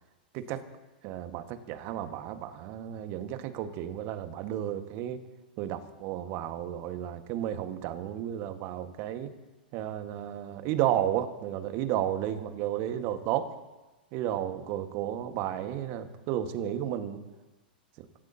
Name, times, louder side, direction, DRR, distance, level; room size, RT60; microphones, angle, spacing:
voice 1, 1.0-5.2 5.6-9.3 9.7-13.5 14.1-17.2, right 11 dB, 45° right, 9 dB, 1.5 m, -32 dB
25.5 x 15.5 x 2.8 m, 1.1 s
figure-of-eight pair, 100°, 5 cm